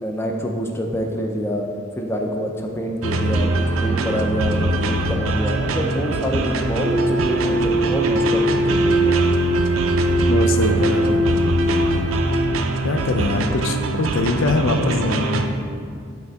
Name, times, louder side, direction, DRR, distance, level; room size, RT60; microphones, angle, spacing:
voice 1, 0.0-1.7 1.9-9.2, equal, 10° left, 2 dB, 0.4 m, -26 dB
sound 1, 3.0-15.5, right 2 dB, 90° right, 0.5 m, -23 dB
sound 2, 6.8-12.5, right 1 dB, 40° right, 0.6 m, -21 dB
voice 2, 10.3-11.2 12.8-15.5, left 3 dB, 75° left, 7 dB, 0.4 m, -22 dB
6.7 x 4.9 x 3.4 m, 2.2 s
head